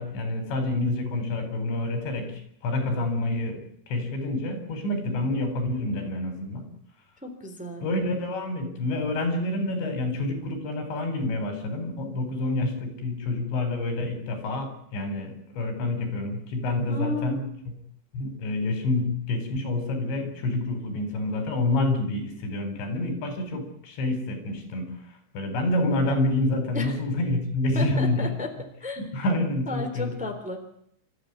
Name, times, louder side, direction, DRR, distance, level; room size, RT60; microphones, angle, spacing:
voice 1, 0.0-3.6 3.9-6.6 7.8-17.4 18.1-28.3 29.0-30.2, left 2 dB, 80° left, 7 dB, 6.4 m, -28 dB
voice 2, 7.2-7.9 16.9-17.5 26.7-26.9 27.7-28.5 28.8-29.0 29.7-30.6, left 2 dB, ahead, 4 dB, 2.9 m, -33 dB
28.0 x 14.0 x 9.6 m, 0.69 s
omnidirectional pair, 5.1 m